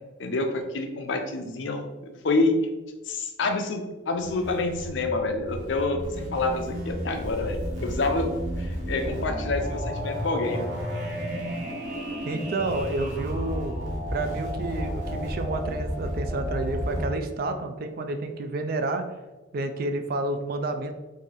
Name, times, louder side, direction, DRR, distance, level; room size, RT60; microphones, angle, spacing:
voice 1, 0.2-2.6 3.0-10.7, left 3 dB, 75° left, 5 dB, 0.5 m, -28 dB
sound 1, 4.1-17.1, equal, 75° right, 1.0 m, -32 dB
voice 2, 12.2-13.8 14.1-19.1 19.5-20.9, right 2 dB, 50° right, 7 dB, 0.4 m, -30 dB
3.7 x 2.6 x 3.2 m, 1.2 s
head